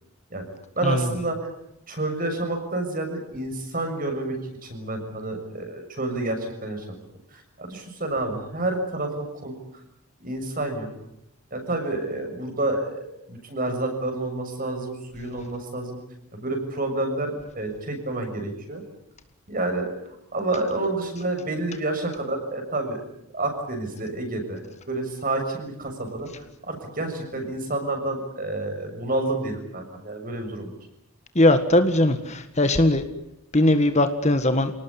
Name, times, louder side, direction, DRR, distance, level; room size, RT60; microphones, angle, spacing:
voice 1, 0.8-1.4 1.9-7.0 7.3-9.6 10.2-10.9 11.5-16.0 16.3-18.8 19.5-23.0 23.3-26.3 26.7-30.7, right 2 dB, 40° right, 5 dB, 6.7 m, -29 dB
voice 2, 31.3-33.0 33.5-34.7, left 1 dB, 30° left, 8 dB, 1.7 m, -19 dB
28.5 x 19.0 x 10.0 m, 0.80 s
head